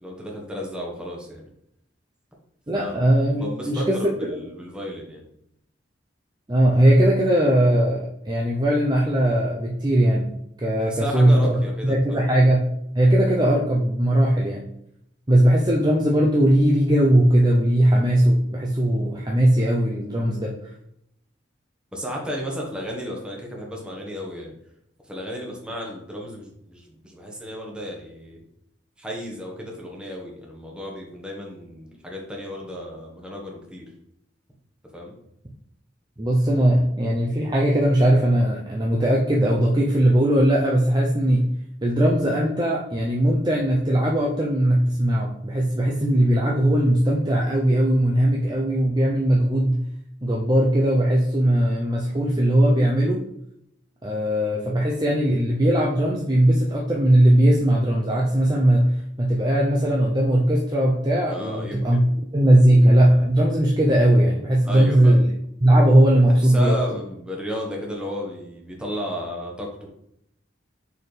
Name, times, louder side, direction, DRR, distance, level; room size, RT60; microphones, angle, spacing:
voice 1, 0.0-1.4 2.7-3.0 3.3-5.2 10.8-12.3 21.9-24.6 25.1-28.4 29.0-33.9 34.9-35.1 61.3-62.2 64.6-65.1 66.3-69.9, equal, 5° right, -2 dB, 1.3 m, -33 dB
voice 2, 2.7-4.4 6.5-14.7 15.3-20.5 36.2-41.5 41.8-49.8 50.2-53.2 54.0-65.2 65.6-66.8, right 1 dB, 20° right, -3 dB, 0.7 m, -19 dB
6.7 x 4.3 x 3.4 m, 0.75 s
head